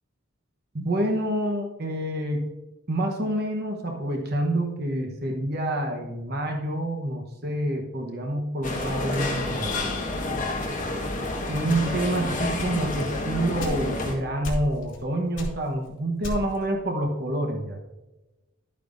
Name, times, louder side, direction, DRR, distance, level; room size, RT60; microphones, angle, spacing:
voice 1, 0.7-2.5 2.9-9.7 11.5-17.8, right 1 dB, 50° right, 2 dB, 1.0 m, -27 dB
sound 1, 8.6-14.1, left 2 dB, 40° left, 1.3 m, -29 dB
sound 2, 8.8-10.2 10.6-11.1 11.6-12.1 12.6-14.1 14.4-15.0 15.3-16.7, equal, 65° left, 2.7 m, -35 dB
11.5 x 8.6 x 2.6 m, 1.0 s
head